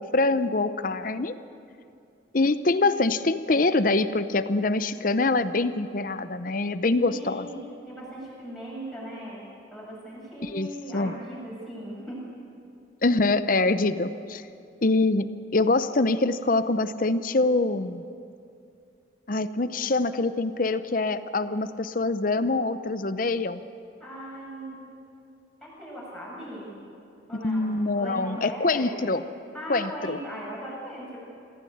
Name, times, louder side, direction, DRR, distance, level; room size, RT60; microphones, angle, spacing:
voice 1, 0.0-1.4 2.3-7.5 10.4-10.7 10.9-11.1 13.0-14.4 14.8-18.0 19.3-23.6 27.3-29.2 29.7-30.2, left 2 dB, 45° left, 12 dB, 0.7 m, -24 dB
voice 2, 6.9-12.2 24.0-24.8 25.6-26.8 27.3-29.1 29.5-31.2, equal, ahead, -6 dB, 7.5 m, -39 dB
24.5 x 15.5 x 8.6 m, 2.6 s
head